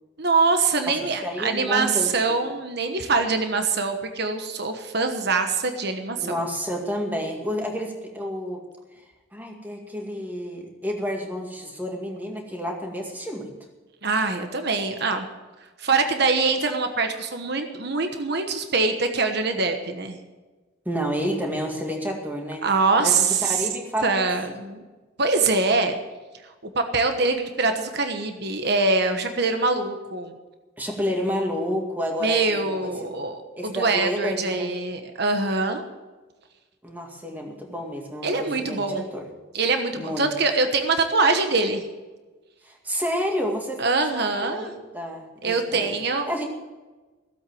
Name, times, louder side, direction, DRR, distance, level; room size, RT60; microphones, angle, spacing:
voice 1, 0.2-6.4 14.0-15.3 15.8-20.2 22.6-23.6 24.0-24.8 25.2-26.0 26.7-30.3 32.2-35.8 38.2-39.0 39.5-41.8 43.8-44.7 45.4-46.3, right 3 dB, 55° right, 6 dB, 1.2 m, -24 dB
voice 2, 1.2-2.4 6.2-8.6 9.3-13.5 20.9-22.6 23.0-24.3 30.8-33.1 33.6-34.7 36.8-39.3 40.0-40.3 42.6-43.8 44.1-45.9 46.2-46.5, equal, 10° right, 1 dB, 2.1 m, -30 dB
16.0 x 8.1 x 7.8 m, 1.2 s
head